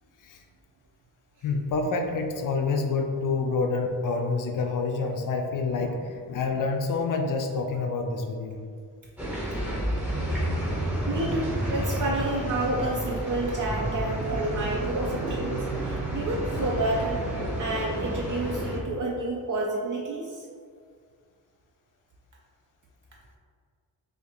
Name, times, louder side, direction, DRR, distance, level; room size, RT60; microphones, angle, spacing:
voice 1, 1.4-8.6, left 4 dB, 55° left, 4 dB, 0.5 m, -27 dB
sound 1, 9.2-18.8, right 1 dB, 5° right, 0.8 m, -30 dB
voice 2, 11.1-17.2 17.6-20.5, right 2 dB, 50° right, -3 dB, 0.5 m, -29 dB
2.5 x 2.5 x 4.1 m, 2.1 s
wide cardioid pair, 130°, 40 cm